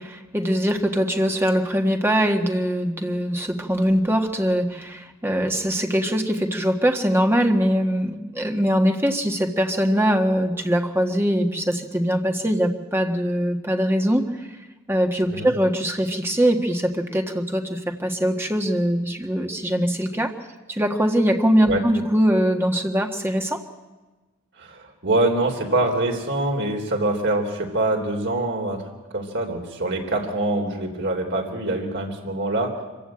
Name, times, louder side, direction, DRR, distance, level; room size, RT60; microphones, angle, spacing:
voice 1, 0.0-14.5 14.9-20.3 20.7-23.6, equal, 10° right, 3 dB, 1.6 m, -22 dB
voice 2, 24.6-28.8 29.1-32.7, right 2 dB, 55° right, 2 dB, 3.6 m, -24 dB
24.5 x 15.5 x 8.7 m, 1.2 s
head